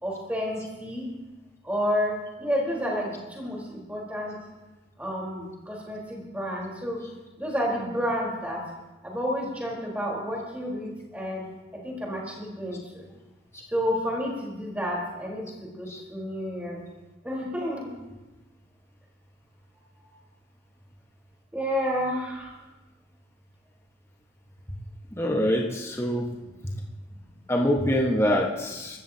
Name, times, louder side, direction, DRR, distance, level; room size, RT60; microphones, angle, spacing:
voice 1, 0.0-1.1 1.6-4.4 5.0-7.0 7.4-8.6 9.0-11.4 11.8-13.1 13.7-16.8 17.2-17.9 21.5-22.5, equal, 10° right, -3 dB, 4.2 m, -30 dB
voice 2, 25.1-26.2 26.6-26.7 27.5-29.0, equal, 15° left, -1 dB, 1.5 m, -25 dB
25.5 x 14.0 x 2.9 m, 1.1 s
head